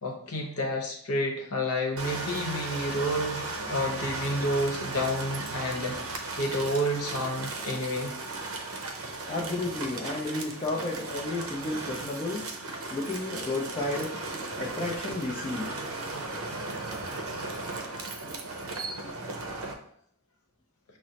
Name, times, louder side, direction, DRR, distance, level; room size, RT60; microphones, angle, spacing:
voice 1, 0.0-5.9 6.4-8.1, equal, 80° left, 1 dB, 0.8 m, -30 dB
sound 1, 2.0-19.7, right 2 dB, 65° right, 0.5 m, -36 dB
voice 2, 9.3-12.5 12.9-14.2 14.6-15.7, left 2 dB, 25° left, -2 dB, 0.4 m, -32 dB
6.0 x 2.0 x 2.8 m, 0.64 s
head